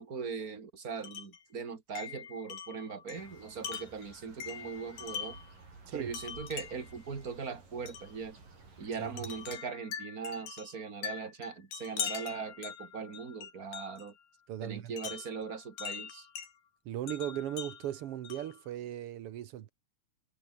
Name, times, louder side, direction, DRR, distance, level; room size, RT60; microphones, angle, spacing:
voice 1, 0.0-5.4 5.9-8.4 8.8-14.1 14.6-16.3, right 5 dB, 25° right, 2.5 m, -40 dB
Wind chime, 1.0-1.4 2.0-5.5 6.1-7.0 7.9-8.1 9.2-14.1 15.0-16.5 17.1-18.6, left 8 dB, 75° left, 4.8 m, -42 dB
sound 1, 3.1-9.6, right 4 dB, 65° right, 9.1 m, -54 dB
voice 2, 14.5-14.9 16.8-19.7, right 12 dB, 90° right, 1.2 m, -38 dB
omnidirectional pair, 4.2 m